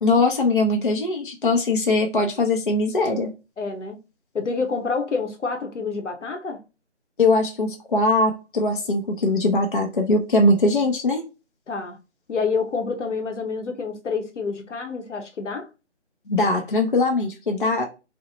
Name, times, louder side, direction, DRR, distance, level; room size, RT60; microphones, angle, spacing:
voice 1, 0.0-3.3 7.2-11.2 16.3-17.9, left 2 dB, 45° left, 0.4 m, -21 dB
voice 2, 3.6-4.0 4.3-6.6 11.7-12.0 12.3-15.7, left 4 dB, 85° left, 0.9 m, -28 dB
2.9 x 2.0 x 2.3 m
figure-of-eight pair, 175°, 35 cm